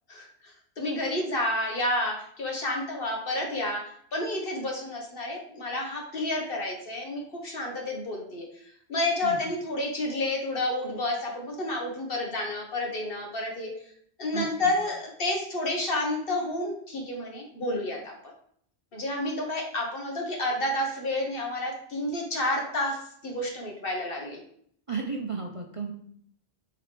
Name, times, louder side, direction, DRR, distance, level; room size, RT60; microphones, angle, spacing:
voice 1, 0.1-3.8 4.1-8.4 8.9-13.7 14.2-18.1 18.9-24.4, left 1 dB, 55° left, 0 dB, 1.5 m, -30 dB
voice 2, 14.3-14.7 24.9-25.9, right 5 dB, 35° right, 0 dB, 0.6 m, -33 dB
8.1 x 3.9 x 3.3 m, 0.64 s
omnidirectional pair, 1.2 m